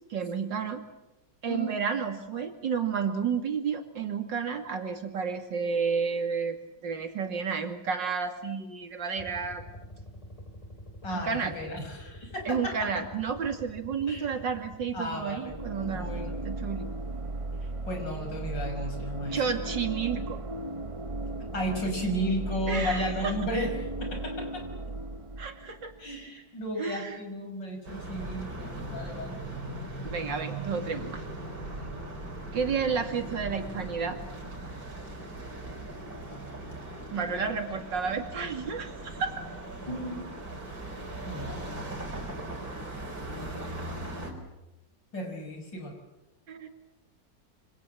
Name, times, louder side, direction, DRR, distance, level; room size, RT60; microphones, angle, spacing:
voice 1, 0.1-0.8 1.4-6.6 6.8-9.7 11.1-11.5 12.5-16.8 19.3-20.4 22.7-23.3 25.4-25.9 26.8-27.2 30.0-31.2 32.5-34.2 37.1-39.4 46.5-46.7, right 6 dB, 80° right, 6 dB, 3.2 m, -31 dB
sound 1, 9.1-15.9, equal, 20° left, 3.6 m, -47 dB
voice 2, 11.0-13.0 14.1-14.3 14.9-15.5 15.9-16.4 17.9-19.4 21.5-23.7 24.0-24.6 26.0-29.4 39.9-40.2 41.3-41.6 45.1-45.9, equal, 80° left, 4 dB, 6.6 m, -34 dB
sound 2, 15.5-26.3, right 2 dB, 25° right, 0.8 m, -36 dB
sound 3, 27.8-44.3, right 1 dB, 50° right, 5.1 m, -39 dB
27.0 x 25.5 x 7.6 m, 0.97 s
omnidirectional pair, 1.9 m